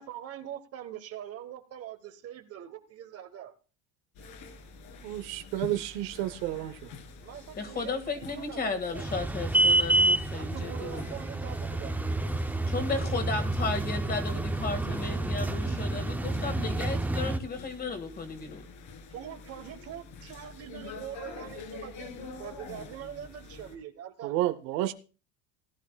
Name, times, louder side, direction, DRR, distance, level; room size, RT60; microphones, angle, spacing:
voice 1, 0.0-3.5 7.2-9.1 10.3-12.2 19.1-22.1 22.4-24.3, right 10 dB, 40° right, 1.2 m, -43 dB
sound 1, 4.1-23.8, left 4 dB, 55° left, 2.1 m, -47 dB
voice 2, 5.0-6.9 24.2-24.9, right 14 dB, 65° right, 0.8 m, -31 dB
voice 3, 7.6-11.0 12.7-18.7, left 4 dB, 25° left, 1.8 m, -34 dB
sound 2, 9.0-17.4, right 2 dB, 5° right, 0.4 m, -28 dB
18.0 x 11.0 x 2.3 m
cardioid pair, 140°, 37 cm